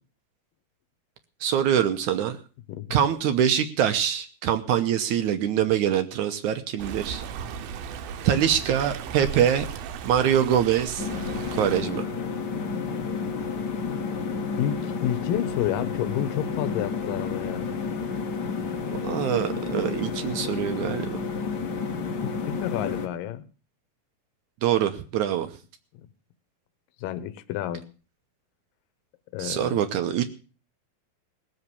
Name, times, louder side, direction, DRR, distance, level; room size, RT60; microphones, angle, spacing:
voice 1, 1.4-2.4 2.9-7.2 8.2-9.7 10.0-11.1 11.5-12.1 19.0-21.2 24.6-25.5 29.4-30.2, right 9 dB, 70° right, 9 dB, 2.1 m, -24 dB
Stream, 6.8-11.8, right 7 dB, 85° right, 2.8 m, -36 dB
sound 1, 11.0-23.1, left 5 dB, 55° left, 1.2 m, -31 dB
voice 2, 14.6-17.7 22.2-23.5 26.0-26.1 27.0-27.9 29.3-29.8, left 11 dB, 75° left, 14 dB, 2.6 m, -30 dB
19.0 x 8.0 x 6.9 m, 0.37 s
omnidirectional pair, 4.2 m